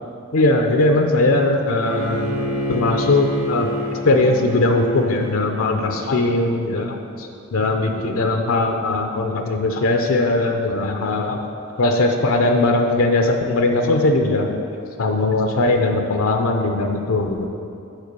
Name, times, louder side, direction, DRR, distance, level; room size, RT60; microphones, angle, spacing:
voice 1, 0.3-2.4 2.7-3.7 4.0-11.4 11.8-14.6 15.0-17.5, left 2 dB, 70° left, 4 dB, 0.6 m, -19 dB
Bowed string instrument, 1.8-6.9, equal, 70° right, 1.4 m, -28 dB
8.1 x 4.3 x 6.7 m, 2.5 s
head